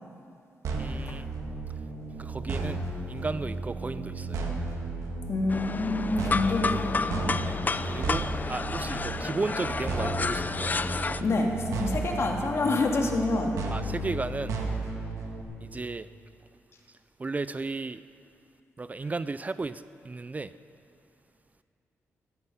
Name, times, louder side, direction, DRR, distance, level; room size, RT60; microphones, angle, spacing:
sound 1, 0.6-15.4, right 2 dB, 90° right, 1.7 m, -34 dB
voice 1, 0.8-1.3 2.2-4.4 7.5-7.6 7.8-10.8 13.7-14.6 15.6-16.1 17.2-18.0 18.8-20.5, right 3 dB, 30° right, 14 dB, 0.4 m, -34 dB
voice 2, 5.3-7.3 11.2-13.6, left 2 dB, 55° left, 1 dB, 2.2 m, -27 dB
sound 2, 5.5-11.2, left 4 dB, 35° left, 0.5 m, -31 dB
15.5 x 13.5 x 5.5 m, 2.5 s
cardioid pair, 65°, 5 cm